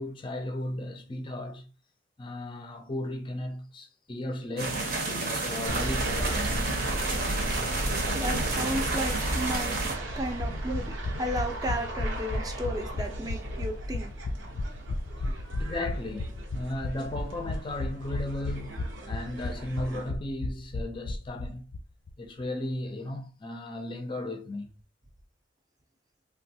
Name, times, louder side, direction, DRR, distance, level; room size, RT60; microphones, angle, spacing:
voice 1, 0.0-1.7 2.2-6.6 15.6-21.6 22.2-24.8, left 1 dB, 25° left, 0.5 m, -36 dB
sound 1, 4.6-9.9, right 3 dB, 55° right, 0.8 m, -31 dB
sound 2, 5.6-20.1, right 1 dB, 85° right, 0.8 m, -35 dB
voice 2, 8.1-9.8 10.2-10.8 11.2-14.1, equal, 20° right, 0.5 m, -33 dB
sound 3, 10.1-21.8 22.1-22.2 22.4-22.5, left 2 dB, 90° left, 0.6 m, -34 dB
3.4 x 2.3 x 2.7 m
head